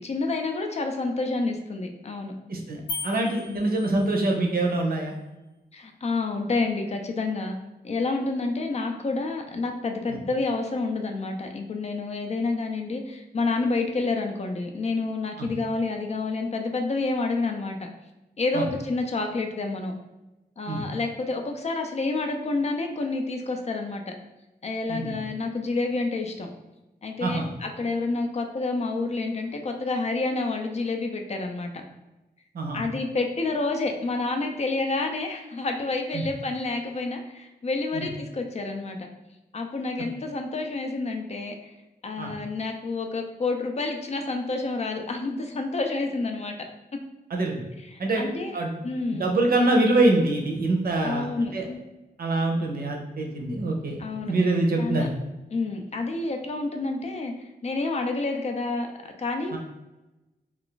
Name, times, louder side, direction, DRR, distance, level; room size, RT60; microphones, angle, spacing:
voice 1, 0.0-2.3 3.5-3.6 5.7-7.6 7.8-17.9 18.4-19.9 20.6-24.2 24.6-26.5 27.0-31.8 32.7-39.0 39.5-41.5 42.0-46.6 47.9-48.6 48.8-49.3 51.0-51.8 54.0-54.3 54.8-55.1 55.5-59.6, left 3 dB, 40° left, 4 dB, 0.4 m, -29 dB
voice 2, 2.5-5.1 10.1-10.2 15.4-15.5 18.5-18.7 20.7-20.8 24.9-25.1 27.2-27.5 32.5-32.8 36.1-36.2 37.9-38.1 42.2-42.3 47.3-47.6 48.0-48.2 48.5-48.8 49.2-51.3 51.5-51.6 52.2-55.1 59.5-59.6, right 2 dB, 65° right, 1 dB, 0.6 m, -25 dB
sound 1, 2.9-4.4, left 3 dB, 75° left, 0.8 m, -37 dB
2.4 x 2.4 x 3.7 m, 1.0 s
wide cardioid pair, 105°, 17 cm